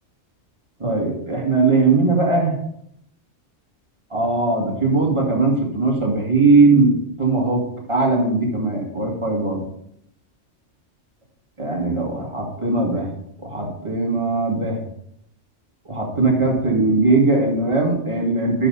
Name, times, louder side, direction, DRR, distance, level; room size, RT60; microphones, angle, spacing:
voice 1, 0.8-2.6 4.1-7.6 7.9-9.6 11.6-13.1 13.4-14.8 15.9-18.7, right 3 dB, 25° right, -2 dB, 2.1 m, -19 dB
10.5 x 5.6 x 4.0 m, 0.72 s
omnidirectional pair, 1.3 m